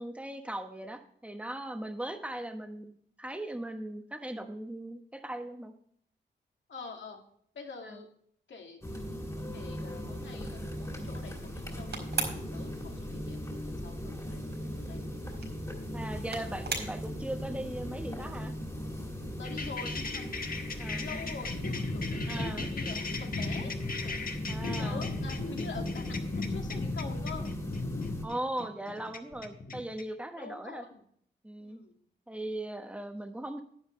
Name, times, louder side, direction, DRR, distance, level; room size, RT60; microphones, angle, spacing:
voice 1, 0.0-5.7 7.8-8.0 15.9-18.5 20.8-21.1 22.3-22.7 24.5-25.1 28.2-30.8 31.4-31.8 32.3-33.6, right 1 dB, 5° right, 5 dB, 1.2 m, -39 dB
voice 2, 6.7-7.2 7.5-8.1 8.5-12.0 12.3-15.2 19.4-20.5 21.0-23.7 24.0-24.3 24.6-27.5 30.4-31.0 31.6-32.0, left 4 dB, 80° left, 2 dB, 2.4 m, -46 dB
sound 1, 8.8-28.2, equal, 15° left, 2.3 m, -39 dB
sound 2, 9.8-21.8, right 4 dB, 65° right, 4.7 m, -44 dB
sound 3, 19.4-30.0, left 3 dB, 50° left, 1.3 m, -36 dB
10.5 x 10.5 x 3.3 m, 0.63 s
wide cardioid pair, 150°, 19 cm